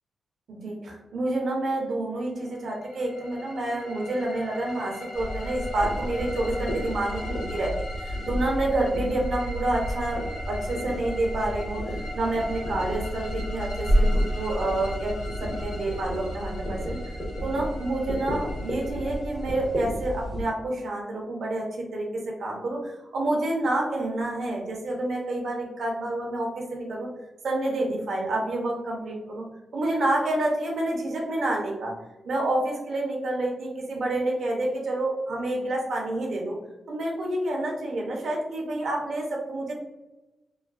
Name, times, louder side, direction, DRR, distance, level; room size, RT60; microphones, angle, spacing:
voice 1, 0.5-10.2 10.5-17.0 17.4-27.1 27.4-29.5 29.7-31.9 32.2-36.6 36.9-39.7, right 1 dB, 75° right, 0 dB, 0.7 m, -28 dB
sound 1, 2.4-20.3, left 2 dB, 90° left, 0.8 m, -41 dB
sound 2, 5.2-20.4, equal, 40° left, 1.3 m, -31 dB
3.1 x 2.2 x 2.4 m, 1.0 s
cardioid pair, 55°, 0 cm